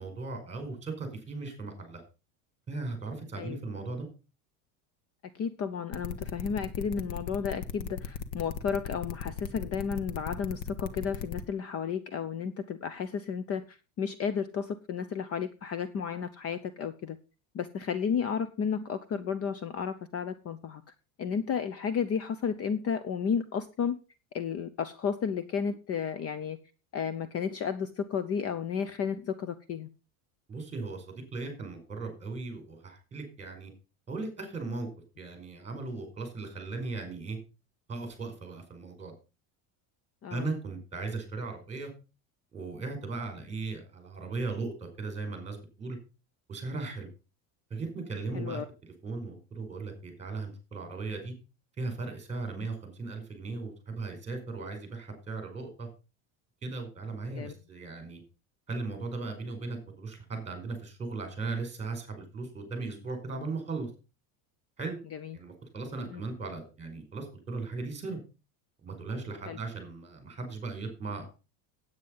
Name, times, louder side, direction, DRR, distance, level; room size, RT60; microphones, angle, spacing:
voice 1, 0.0-2.0 2.7-4.1 30.5-33.7 34.1-34.9 35.2-37.4 37.9-39.1 40.3-41.9 42.5-46.0 46.5-47.1 47.7-51.3 51.8-55.9 56.6-58.2 58.7-63.9 64.8-65.0 65.3-68.2 68.8-71.3, right 3 dB, 15° right, 6 dB, 5.0 m, -37 dB
voice 2, 5.4-17.2 17.5-20.8 21.2-23.9 24.3-26.6 26.9-29.9 40.2-40.5 48.3-48.6 52.6-52.7 57.3-57.5 65.1-65.4 66.1-66.2 69.5-69.6, left 7 dB, 35° left, 14 dB, 0.8 m, -33 dB
sound 1, 5.9-11.4, left 7 dB, 70° left, 1.6 m, -37 dB
9.5 x 9.0 x 5.4 m, 0.31 s
supercardioid pair, 135°, 42 cm